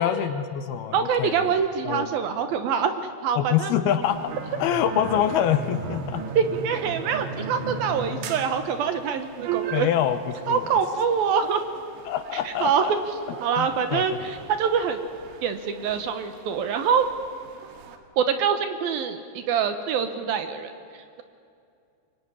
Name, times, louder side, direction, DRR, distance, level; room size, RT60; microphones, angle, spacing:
voice 1, 0.0-1.4 1.9-2.1 3.4-6.2 9.7-10.2 10.5-10.7 12.1-12.9 13.6-14.0, left 10 dB, 75° left, 10 dB, 2.7 m, -25 dB
voice 2, 0.9-3.0 3.2-3.7 6.4-9.9 10.5-11.6 12.3-13.0 13.4-15.0 15.4-17.1 18.2-21.2, right 7 dB, 70° right, 9 dB, 2.6 m, -25 dB
sound 1, 4.0-18.0, right 5 dB, 90° right, 4.1 m, -37 dB
23.5 x 23.5 x 9.9 m, 2.5 s
omnidirectional pair, 5.0 m